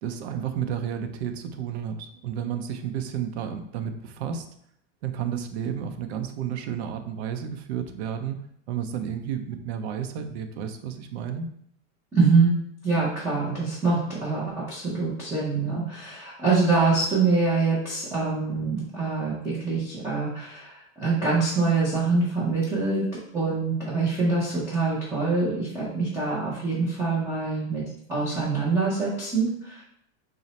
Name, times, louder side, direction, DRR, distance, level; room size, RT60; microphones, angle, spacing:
voice 1, 0.0-4.5 5.0-11.5, right 8 dB, 65° right, 7 dB, 0.5 m, -32 dB
voice 2, 12.1-12.5 12.8-23.0 23.3-27.8 28.1-29.8, right 4 dB, 10° right, -9 dB, 0.5 m, -25 dB
3.8 x 2.1 x 4.1 m, 0.70 s
supercardioid pair, 165°, 35 cm